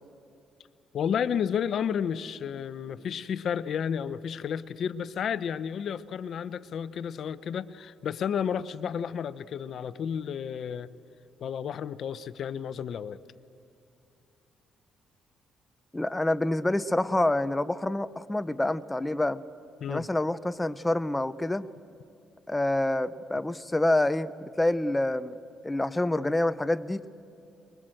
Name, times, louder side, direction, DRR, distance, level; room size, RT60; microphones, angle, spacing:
voice 1, 0.9-10.9 11.4-13.2 19.8-20.1, left 8 dB, 65° left, 16 dB, 0.6 m, -32 dB
voice 2, 15.9-19.4 19.9-21.7 22.5-24.3 24.6-25.4 25.6-27.1, left 1 dB, 15° left, 13 dB, 0.6 m, -27 dB
23.5 x 22.5 x 7.7 m, 2.6 s
cardioid pair, 90°, 0 cm